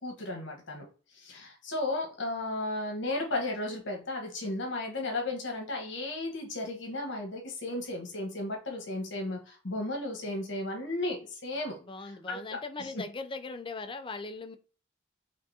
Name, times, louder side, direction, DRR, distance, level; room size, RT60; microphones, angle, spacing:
voice 1, 0.0-0.8 1.1-11.8 12.3-12.9, left 2 dB, 60° left, 1 dB, 1.3 m, -34 dB
voice 2, 11.8-14.6, left 3 dB, 25° left, 8 dB, 0.5 m, -39 dB
5.1 x 3.5 x 2.8 m, 0.38 s
head